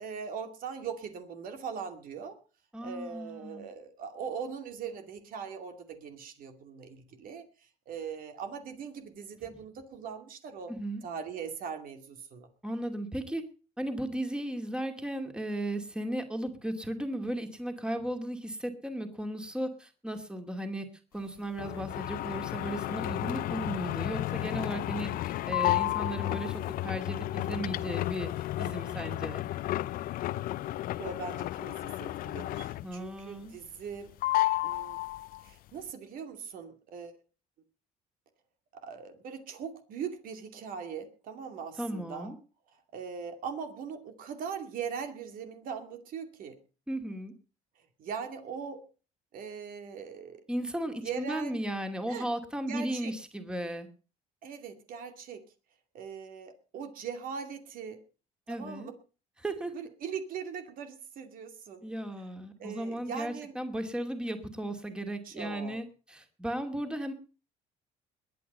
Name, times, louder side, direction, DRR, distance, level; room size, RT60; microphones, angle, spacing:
voice 1, 0.0-2.4 2.8-10.7 11.0-12.5 31.0-34.1 34.6-35.0 35.4-37.2 38.7-42.3 42.9-46.6 48.0-48.8 49.3-50.4 51.0-51.6 52.1-52.3 52.7-53.1 54.4-55.4 55.9-58.0 58.5-58.9 59.7-61.9 62.6-63.5 65.2-65.8, right 6 dB, 60° right, 7 dB, 2.5 m, -40 dB
voice 2, 2.7-3.6 10.7-11.0 12.6-13.4 13.8-20.9 21.1-28.3 28.6-29.5 32.8-33.5 41.8-42.3 46.9-47.3 50.5-53.9 58.5-58.9 59.4-59.7 61.8-67.1, right 1 dB, 5° right, 6 dB, 2.4 m, -35 dB
sound 1, 21.6-33.1 33.4-34.0 34.2-35.5, left 16 dB, 65° left, 0.6 m, -32 dB
21.5 x 8.6 x 5.5 m, 0.36 s
cardioid pair, 110°, 16 cm